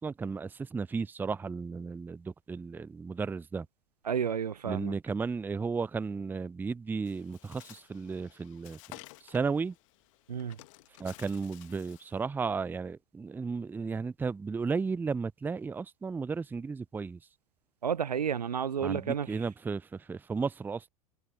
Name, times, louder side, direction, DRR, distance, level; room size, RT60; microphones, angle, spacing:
voice 1, 0.0-3.7 4.7-8.8 9.2-9.7 11.0-17.2 18.8-20.9, right 5 dB, 10° right, 0.5 m, -34 dB
voice 2, 4.0-5.0 10.3-10.6 17.8-19.4, right 7 dB, 75° right, 0.8 m, -31 dB
Bird, 7.1-12.2, left 22 dB, 50° left, 1.6 m, -53 dB
figure-of-eight pair, 85°, 20 cm